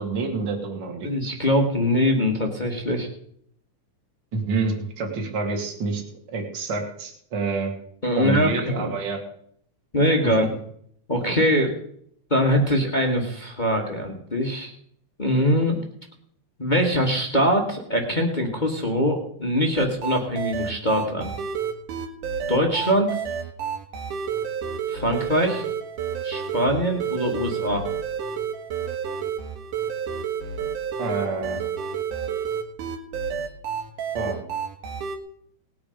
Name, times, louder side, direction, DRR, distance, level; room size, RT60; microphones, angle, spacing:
voice 1, 0.0-1.1 4.3-6.0 6.3-7.7 8.2-9.2 31.0-31.6 34.1-34.4, right 4 dB, 35° right, 1 dB, 2.7 m, -27 dB
voice 2, 1.0-3.1 8.0-8.9 9.9-10.5 11.1-11.8 12.3-14.7 15.2-15.8 16.6-21.3 22.5-23.1 24.9-25.6 26.2-27.8, equal, 25° left, 1 dB, 1.1 m, -22 dB
sound 1, 19.8-35.2, right 7 dB, 75° right, 3.0 m, -30 dB
19.5 x 8.7 x 5.1 m, 0.66 s
omnidirectional pair, 3.7 m